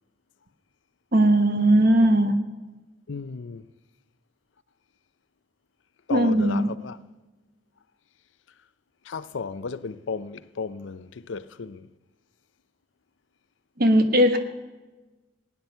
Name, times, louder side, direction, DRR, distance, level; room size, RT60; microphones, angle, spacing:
voice 1, 1.1-2.3 6.1-6.7 13.8-14.4, right 1 dB, 50° right, 1.2 m, -18 dB
voice 2, 3.1-3.7 6.1-7.0 9.0-11.9, left 5 dB, 80° left, 0.5 m, -34 dB
17.5 x 9.5 x 5.6 m
head